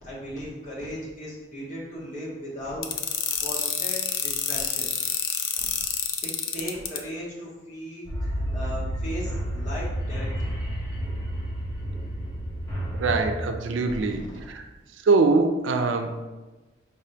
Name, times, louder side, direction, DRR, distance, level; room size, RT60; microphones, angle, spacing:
voice 1, 0.0-4.9 6.2-8.1 8.3-10.5 13.9-14.4, equal, 40° left, -7 dB, 1.5 m, -37 dB
sound 1, 2.8-7.0, left 8 dB, 85° left, 0.5 m, -27 dB
sound 2, 8.1-13.3, equal, 20° left, 0.9 m, -30 dB
voice 2, 13.0-14.6 15.0-16.2, right 3 dB, 85° right, 6 dB, 0.4 m, -23 dB
5.2 x 3.4 x 2.8 m, 1.2 s
head